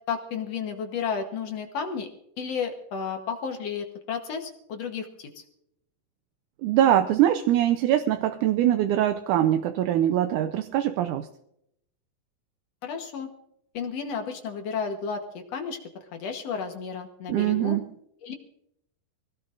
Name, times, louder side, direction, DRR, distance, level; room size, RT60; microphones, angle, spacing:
voice 1, 0.1-2.1 2.4-5.4 12.8-13.3 13.7-15.8 16.1-17.8 18.2-18.3, left 6 dB, 60° left, 4 dB, 1.9 m, -32 dB
voice 2, 6.6-11.3 17.3-17.8, right 11 dB, 75° right, 7 dB, 2.0 m, -23 dB
24.0 x 17.0 x 2.5 m, 0.76 s
omnidirectional pair, 4.0 m